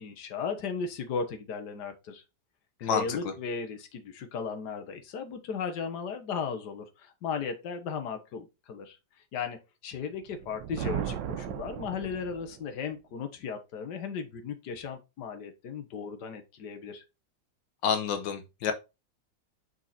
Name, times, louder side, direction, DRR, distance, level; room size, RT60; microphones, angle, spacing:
voice 1, 0.0-2.2 2.8-9.0 9.3-17.0, left 6 dB, 70° left, 1.7 m, -36 dB
voice 2, 2.8-3.2 17.8-18.7, left 7 dB, 90° left, 1.7 m, -28 dB
Thunder, 10.3-12.7, right 10 dB, 80° right, 1.4 m, -36 dB
6.2 x 4.8 x 4.2 m
omnidirectional pair, 1.9 m